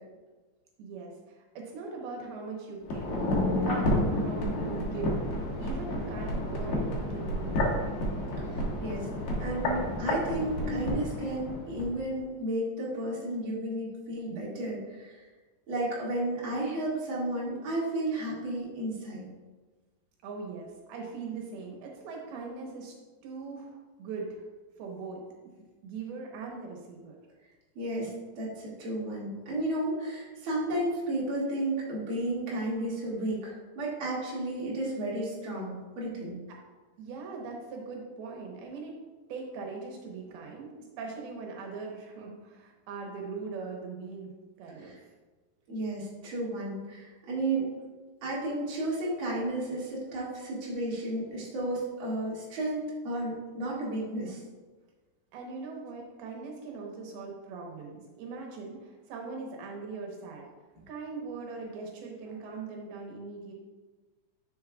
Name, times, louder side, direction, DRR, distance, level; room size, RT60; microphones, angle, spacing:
voice 1, 0.8-3.2 3.5-5.2 5.6-7.8 20.2-22.9 23.2-24.4 24.8-25.2 25.8-27.2 37.0-39.0 39.3-44.3 44.6-45.0 55.3-60.5 60.9-63.5, right 4 dB, 80° right, 0 dB, 3.0 m, -40 dB
sound 1, 2.8-11.9 12.2-12.3, left 1 dB, 55° left, 2.6 m, -30 dB
voice 2, 8.5-9.1 9.4-15.2 15.7-19.3 27.8-36.4 44.8-45.0 45.7-47.7 48.2-54.4, right 1 dB, 40° right, -6 dB, 2.4 m, -33 dB
10.0 x 6.5 x 2.4 m, 1.3 s
omnidirectional pair, 4.4 m